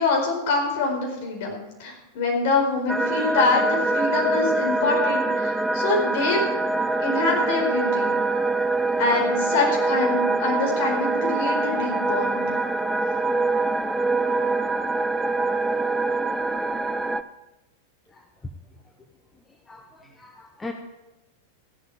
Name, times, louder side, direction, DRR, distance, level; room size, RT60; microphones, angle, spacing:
voice 1, 0.0-6.4 7.0-8.2 9.0-12.4, left 3 dB, 50° left, 1 dB, 4.5 m, -25 dB
sound 1, 2.9-17.2, right 2 dB, 5° right, 0.5 m, -24 dB
voice 2, 19.7-20.7, left 3 dB, 15° left, 4 dB, 1.0 m, -39 dB
15.0 x 11.5 x 4.8 m, 1.0 s
figure-of-eight pair, 90°, 0 cm